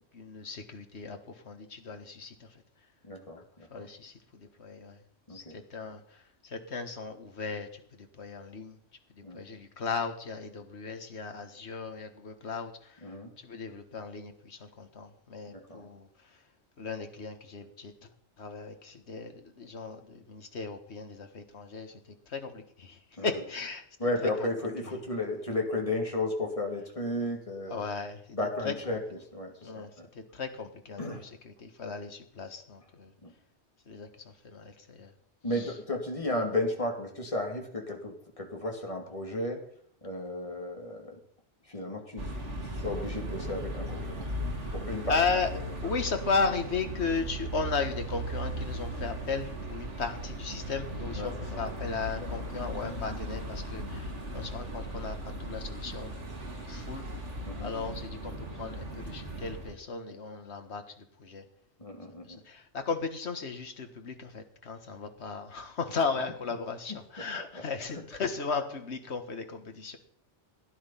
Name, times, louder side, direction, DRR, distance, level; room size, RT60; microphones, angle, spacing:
voice 1, 0.1-2.6 3.3-3.4 3.7-5.0 5.3-8.8 9.3-13.0 13.4-16.1 16.8-17.9 18.4-22.0 22.3-23.8 24.4-24.5 27.7-28.2 28.6-28.7 29.6-33.1 33.9-35.1 35.5-35.7 45.1-45.5 45.8-56.1 56.7-57.1 57.6-61.4 62.3-70.0, left 4 dB, 65° left, 7 dB, 1.8 m, -36 dB
voice 2, 3.0-3.9 5.3-5.6 9.2-9.4 13.0-13.3 15.5-15.9 23.2-23.3 24.0-27.9 28.3-30.1 31.0-31.3 33.2-33.3 35.4-39.6 40.0-41.2 41.7-42.3 42.6-44.3 44.7-45.1 49.9-50.1 51.2-51.6 52.4-52.5 57.5-57.7 61.8-62.4 67.2-67.6 67.9-68.0, left 1 dB, 30° left, 2 dB, 2.7 m, -34 dB
sound 1, 42.2-59.7, right 1 dB, 80° right, 2.8 m, -37 dB
16.0 x 10.5 x 5.7 m, 0.63 s
omnidirectional pair, 1.2 m